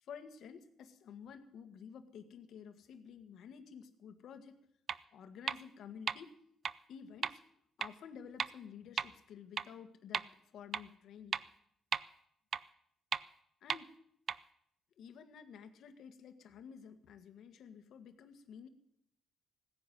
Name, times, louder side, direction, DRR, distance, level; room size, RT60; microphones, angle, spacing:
voice 1, 0.0-4.6 5.1-6.3 6.9-7.4 7.8-11.4 13.6-14.0 15.0-18.7, left 7 dB, 70° left, 9 dB, 1.6 m, -52 dB
sound 1, 4.9-5.0 5.5-5.6 6.1-6.2 6.6-6.7 7.2-7.3 7.8-7.9 8.4-8.5 9.0-9.1 9.6-9.7 10.1-10.2 10.7-10.8 11.3-11.4 11.9-12.0 12.5-12.6 13.1-13.2 13.7-13.8 14.3-14.4, right 7 dB, 50° right, 0.5 m, -34 dB
16.5 x 10.0 x 7.7 m, 0.73 s
cardioid pair, 90°, 0 cm